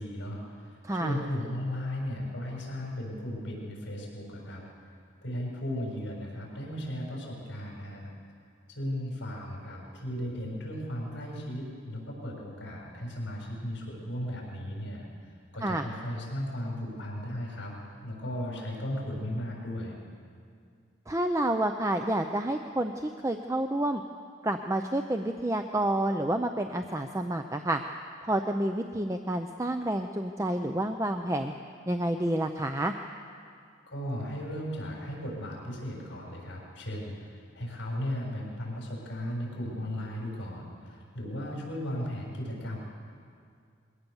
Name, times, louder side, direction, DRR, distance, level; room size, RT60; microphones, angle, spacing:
voice 1, 0.0-4.6 5.2-8.1 8.7-15.1 15.5-17.7 18.0-20.0 33.9-42.8, equal, 65° left, -2 dB, 6.6 m, -36 dB
voice 2, 0.8-1.1 15.6-15.9 21.1-24.0 24.4-27.8 28.2-31.5 31.9-32.9, right 1 dB, 15° right, 5 dB, 0.5 m, -29 dB
22.0 x 17.0 x 7.1 m, 2.2 s
head